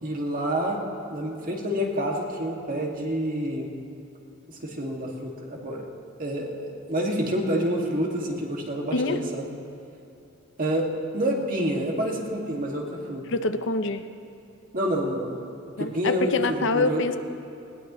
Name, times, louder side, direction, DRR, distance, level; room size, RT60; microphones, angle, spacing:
voice 1, 0.0-0.8 1.1-3.7 4.5-5.9 6.2-9.5 10.6-13.4 14.7-15.3 15.8-16.4 16.7-17.0, equal, 45° right, 0 dB, 2.1 m, -28 dB
voice 2, 13.3-14.0 15.8-17.2, left 3 dB, 65° left, 9 dB, 0.7 m, -25 dB
20.0 x 18.5 x 3.1 m, 2.7 s
head